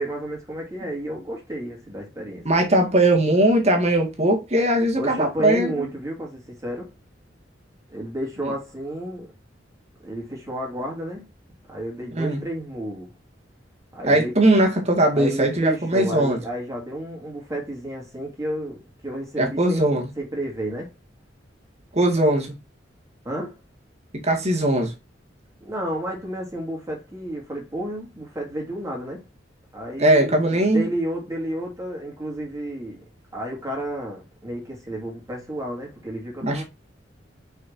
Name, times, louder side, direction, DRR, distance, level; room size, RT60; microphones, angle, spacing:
voice 1, 0.0-2.5 5.0-6.9 7.9-9.3 10.0-11.3 11.7-13.1 13.9-14.4 15.1-20.9 23.2-23.5 25.6-29.2 29.7-33.0 33.3-36.6, right 1 dB, 20° right, 2.6 m, -31 dB
voice 2, 2.5-5.9 12.1-12.4 14.0-16.4 19.4-20.1 21.9-22.6 24.2-24.9 30.0-30.8 36.4-36.6, right 1 dB, 35° right, 1.9 m, -20 dB
6.4 x 5.6 x 2.7 m
head